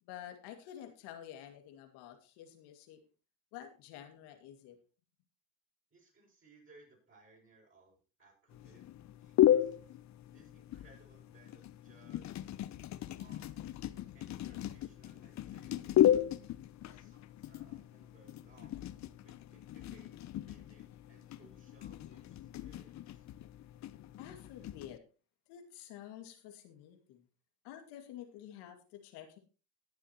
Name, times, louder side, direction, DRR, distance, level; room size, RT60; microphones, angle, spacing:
voice 1, 0.0-3.0 3.5-4.8 14.0-14.1 16.8-17.1 24.2-25.0 25.5-27.3 27.6-29.4, left 11 dB, 70° left, 6 dB, 2.3 m, -50 dB
voice 2, 5.9-8.8 9.2-10.0 10.3-12.5 13.1-13.6 14.1-16.2 16.8-18.9 19.2-23.3, right 3 dB, 30° right, -3 dB, 7.0 m, -64 dB
sound 1, 8.5-25.0, left 12 dB, 40° left, 0.8 m, -35 dB
19.5 x 7.1 x 3.0 m, 0.34 s
supercardioid pair, 85°, 41 cm